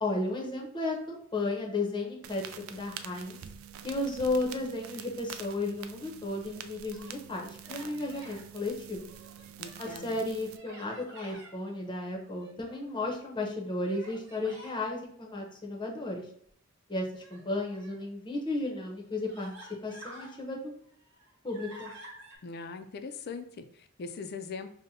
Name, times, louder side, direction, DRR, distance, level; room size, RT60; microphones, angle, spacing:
voice 1, 0.0-3.4 3.8-9.1 9.8-16.3 16.9-19.5 19.8-20.7 21.4-21.9, left 2 dB, 25° left, 0 dB, 0.7 m, -34 dB
sound 1, 2.2-10.6, right 9 dB, 85° right, 0.3 m, -46 dB
Human voice, 6.7-7.2 7.6-8.4 9.0-10.1 10.5-11.5 12.2-12.9 13.8-14.8 17.1-18.0 18.7-18.8 19.3-20.4 20.8-22.4, right 1 dB, 65° right, 1.2 m, -50 dB
voice 2, 9.6-10.2 22.4-24.7, left 4 dB, 50° left, 9 dB, 0.4 m, -41 dB
5.2 x 2.1 x 2.7 m, 0.64 s
head